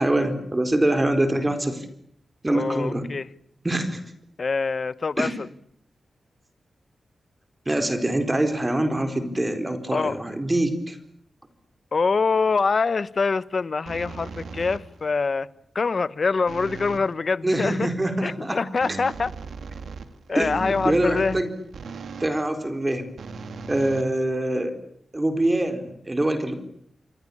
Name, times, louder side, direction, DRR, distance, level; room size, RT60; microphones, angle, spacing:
voice 1, 0.0-1.9 2.4-3.1 3.6-4.0 5.2-5.4 7.7-11.0 17.4-18.6 20.3-21.5 22.2-23.1 23.7-24.7 25.1-26.5, right 1 dB, 20° right, 4.3 m, -24 dB
voice 2, 2.5-3.3 4.4-5.5 9.9-10.2 11.9-15.5 15.7-17.9 18.2-19.3 20.3-21.4, left 4 dB, 50° left, 1.1 m, -24 dB
sound 1, 13.9-15.1 16.5-17.1 18.8-22.4 23.2-24.7, right 4 dB, 85° right, 2.6 m, -38 dB
28.0 x 23.5 x 8.6 m
wide cardioid pair, 105°, 0 cm